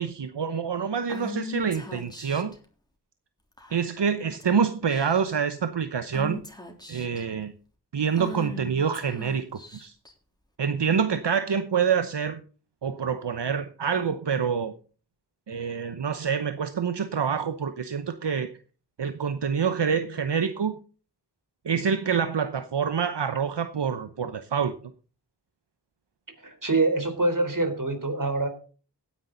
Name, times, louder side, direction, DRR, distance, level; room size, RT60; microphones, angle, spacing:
voice 1, 0.0-2.5 3.7-6.4 6.9-7.5 7.9-9.4 9.8-9.9 10.6-12.4 12.8-14.7 15.5-18.5 19.0-20.8 21.6-24.7, right 6 dB, 80° right, 10 dB, 0.9 m, -26 dB
Female speech woman speaking / Whispering, 1.1-2.6 3.6-4.0 4.4-4.6 4.9-5.4 6.1-7.2 8.1-10.1, left 2 dB, 10° left, 3.5 m, -39 dB
voice 2, 26.4-28.5, right 2 dB, 50° right, 7 dB, 4.0 m, -25 dB
16.5 x 10.0 x 3.9 m, 0.38 s
wide cardioid pair, 45°, 41 cm